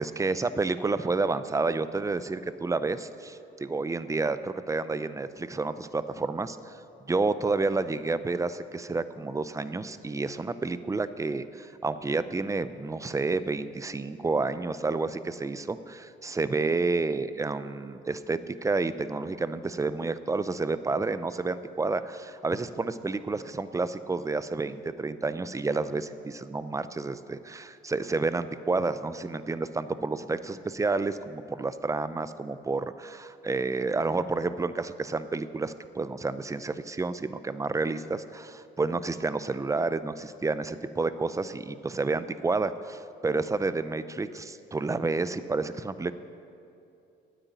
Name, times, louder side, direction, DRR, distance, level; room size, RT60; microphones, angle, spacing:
voice 1, 0.0-6.8 7.1-46.1, right 3 dB, 15° right, 13 dB, 0.5 m, -30 dB
9.1 x 8.9 x 9.4 m, 2.7 s
cardioid pair, 90°, 20 cm